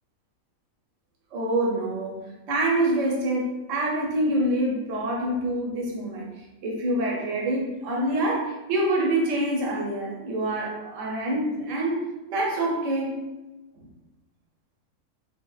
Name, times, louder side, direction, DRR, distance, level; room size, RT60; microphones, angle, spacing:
voice 1, 1.3-6.3 6.6-12.0 12.3-13.2, right 1 dB, 60° right, -2 dB, 1.1 m, -26 dB
4.3 x 3.2 x 2.3 m, 1.1 s
omnidirectional pair, 1.5 m